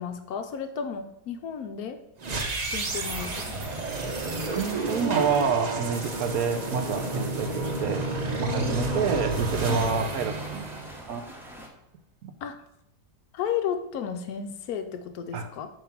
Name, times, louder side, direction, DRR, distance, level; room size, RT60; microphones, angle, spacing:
voice 1, 0.0-2.0 2.7-3.6 8.4-9.1 9.7-9.9 12.4-12.6 13.3-15.7, left 8 dB, 75° left, 7 dB, 1.1 m, -33 dB
sound 1, 2.2-11.4, right 3 dB, 45° right, 0.5 m, -31 dB
sound 2, 2.9-11.7, equal, ahead, 0.6 m, -44 dB
voice 2, 4.5-8.0 8.4-10.7 11.1-11.2 12.2-12.3 15.3-15.5, right 5 dB, 70° right, 8 dB, 1.1 m, -28 dB
7.1 x 3.1 x 5.8 m, 0.79 s
omnidirectional pair, 1.7 m